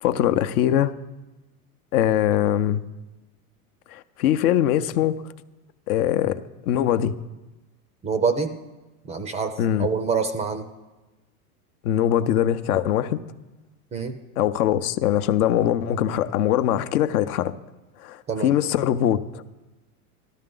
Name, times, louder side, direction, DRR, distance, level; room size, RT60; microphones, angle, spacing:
voice 1, 0.0-0.9 1.9-2.8 3.9-5.2 5.9-6.4 6.7-7.1 9.6-9.9 11.8-13.2 14.4-17.6 18.0-19.4, left 11 dB, 75° left, 0.7 m, -22 dB
voice 2, 8.0-8.5 9.0-10.6 13.9-14.2 18.3-18.5, right 5 dB, 15° right, 0.4 m, -26 dB
13.0 x 12.5 x 3.8 m
supercardioid pair, 120°, 45 cm